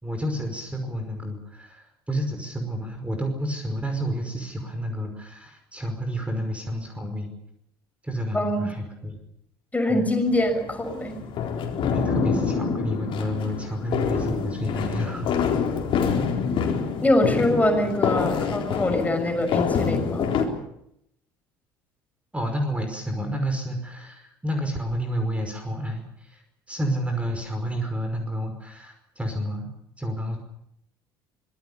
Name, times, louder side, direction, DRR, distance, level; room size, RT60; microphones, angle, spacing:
voice 1, 0.0-7.3 8.0-9.2 9.9-10.1 11.9-15.3 22.3-29.7 30.0-30.4, equal, 10° right, 5 dB, 5.4 m, -30 dB
voice 2, 8.3-8.7 9.7-11.3 17.0-20.3, left 1 dB, 10° left, 6 dB, 6.3 m, -24 dB
sound 1, 10.3-20.5, left 6 dB, 45° left, 4.1 m, -26 dB
25.5 x 21.0 x 7.1 m, 0.77 s
figure-of-eight pair, 60°, 12 cm